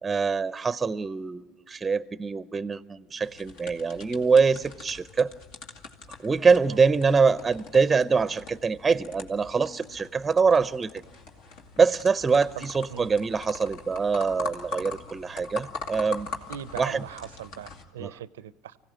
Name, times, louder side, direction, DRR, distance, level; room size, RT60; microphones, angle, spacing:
voice 1, 0.0-5.3 6.2-10.9 11.8-16.3 16.8-17.0 18.0-18.1, right 5 dB, 20° right, 0.6 m, -24 dB
sound 1, 3.2-17.8, left 3 dB, 70° left, 2.2 m, -42 dB
voice 2, 12.6-13.1 16.5-18.8, right 10 dB, 90° right, 0.6 m, -40 dB
25.0 x 16.5 x 7.4 m
hypercardioid pair, 85°, 0 cm